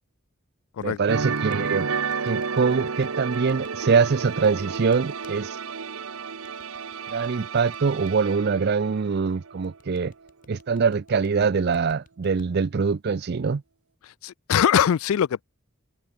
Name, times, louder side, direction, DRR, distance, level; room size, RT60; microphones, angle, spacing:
excited fast clapping, 0.8-5.3 6.4-8.1 9.6-12.5, left 2 dB, 40° left, 7.4 m, -55 dB
voice 1, 0.8-1.9 2.2-5.6 7.1-10.1 10.5-13.6, right 5 dB, 50° right, 0.4 m, -23 dB
sound 1, 1.1-9.8 10.0-10.3, right 5 dB, 75° right, 1.0 m, -31 dB
voice 2, 14.2-15.4, left 9 dB, 70° left, 0.3 m, -21 dB
head